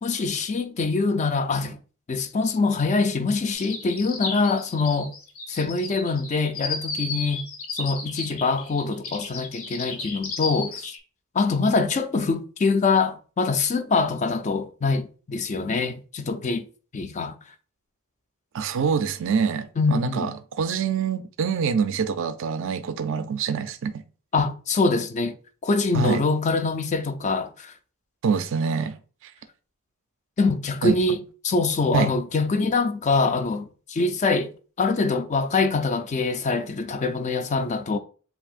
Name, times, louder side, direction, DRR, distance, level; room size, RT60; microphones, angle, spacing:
voice 1, 0.0-1.8 2.1-5.1 5.5-7.4 7.7-11.0 11.3-16.7 16.9-17.3 19.8-20.3 24.3-25.4 25.6-27.7 30.4-34.5 34.8-38.0, left 4 dB, 35° left, 0.4 m, -24 dB
sound 1, 3.5-11.0, left 4 dB, 85° left, 1.2 m, -33 dB
voice 2, 18.5-24.0 25.9-26.2 28.2-29.0 30.8-30.9 31.9-32.1, right 6 dB, 65° right, 0.4 m, -25 dB
7.1 x 2.7 x 2.4 m
head